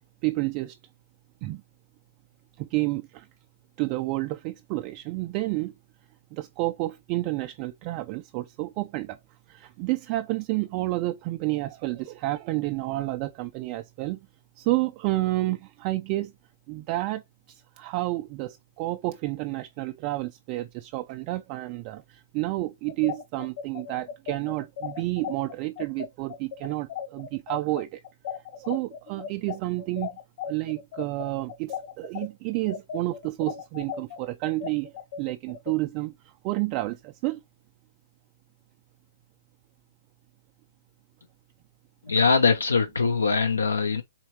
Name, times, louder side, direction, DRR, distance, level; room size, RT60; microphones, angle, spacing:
voice 1, 0.2-0.8 1.4-1.6 2.6-3.3 3.8-5.7 6.3-9.2 9.5-14.2 14.6-16.3 16.7-17.2 17.5-28.0 28.5-30.1 30.5-34.9 35.2-36.1 36.4-37.4, right 19 dB, 35° right, 0.3 m, -30 dB
sound 1, 22.9-32.3 32.7-35.8, left 8 dB, 50° left, 1.2 m, -36 dB
voice 2, 42.0-44.0, left 4 dB, 80° left, 0.6 m, -22 dB
4.3 x 3.1 x 3.1 m
figure-of-eight pair, 125°, 0 cm